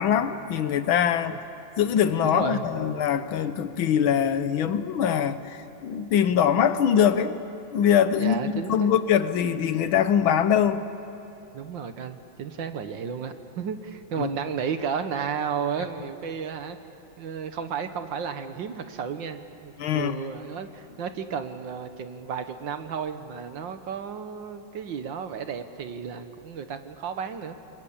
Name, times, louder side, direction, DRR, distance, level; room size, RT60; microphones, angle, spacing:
voice 1, 0.0-1.4 1.8-7.4 7.7-10.8 14.2-14.3 19.8-20.1, left 8 dB, 75° left, 11 dB, 1.8 m, -23 dB
voice 2, 2.2-2.7 8.2-8.9 11.5-16.8 17.2-27.6, right 7 dB, 65° right, 9 dB, 1.8 m, -33 dB
29.0 x 21.5 x 8.7 m, 2.8 s
omnidirectional pair, 2.2 m